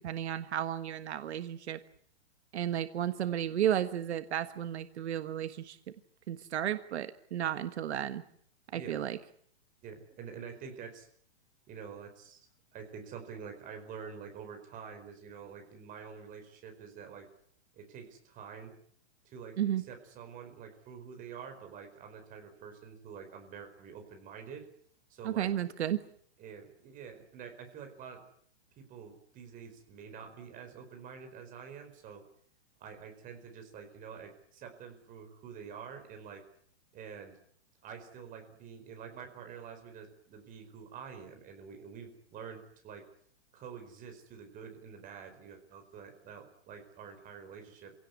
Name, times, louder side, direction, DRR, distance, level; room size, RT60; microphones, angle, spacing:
voice 1, 0.0-1.8 2.5-5.8 6.3-8.2 8.7-9.2 19.6-19.8 25.2-26.0, right 10 dB, 70° right, 10 dB, 1.5 m, -33 dB
voice 2, 9.8-11.1 11.7-12.4 12.7-17.3 17.7-18.7 19.2-24.7 25.1-25.5 26.4-28.2 28.8-32.2 32.8-36.4 36.9-37.4 37.8-43.0 43.5-47.9, right 6 dB, 25° right, 6 dB, 4.8 m, -47 dB
27.0 x 17.5 x 9.5 m, 0.64 s
hypercardioid pair, 150°, 34 cm